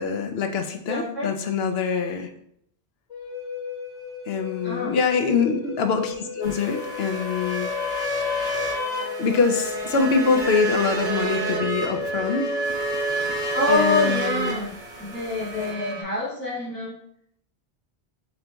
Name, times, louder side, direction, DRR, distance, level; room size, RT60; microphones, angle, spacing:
voice 1, 0.0-2.3 4.3-7.7 9.2-12.6 13.2-13.4 13.7-14.6 15.6-15.7, left 5 dB, 75° left, 5 dB, 0.8 m, -24 dB
voice 2, 0.9-1.3 4.6-4.9 13.5-14.7 15.0-17.0, left 3 dB, 10° left, -11 dB, 1.4 m, -26 dB
Wind instrument woodwind instrument, 3.1-12.4, left 6 dB, 40° left, 1.2 m, -36 dB
sound 1, 6.4-16.0, right 1 dB, 35° right, 1.3 m, -29 dB
6.5 x 3.0 x 2.2 m, 0.70 s
omnidirectional pair, 1.1 m